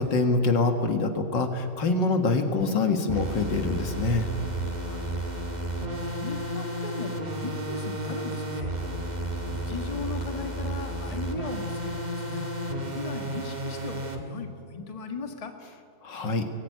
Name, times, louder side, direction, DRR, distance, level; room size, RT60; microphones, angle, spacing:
voice 1, 0.0-4.3 16.0-16.4, left 3 dB, 65° left, 6 dB, 2.3 m, -25 dB
sound 1, 3.1-14.2, right 1 dB, 20° right, 2.0 m, -32 dB
voice 2, 4.9-5.2 6.1-8.7 9.5-12.5 12.9-15.5, left 3 dB, 20° left, 5 dB, 1.5 m, -38 dB
23.0 x 18.5 x 9.4 m, 2.4 s
omnidirectional pair, 2.2 m